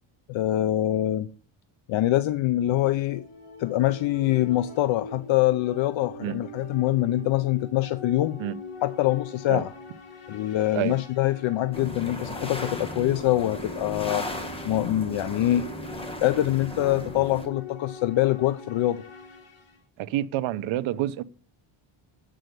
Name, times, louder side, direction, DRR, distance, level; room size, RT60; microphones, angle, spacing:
voice 1, 0.3-1.3 1.9-3.3 3.6-8.4 8.8-9.7 10.3-14.3 14.6-15.7 16.2-19.0, left 14 dB, 70° left, 0.6 m, -24 dB
sound 1, 2.5-19.8, left 3 dB, 85° left, 3.2 m, -42 dB
sound 2, 11.7-17.5, equal, 10° left, 1.4 m, -36 dB
voice 2, 20.0-21.2, right 14 dB, 70° right, 0.7 m, -28 dB
7.7 x 6.3 x 7.9 m
cardioid pair, 155°, 49 cm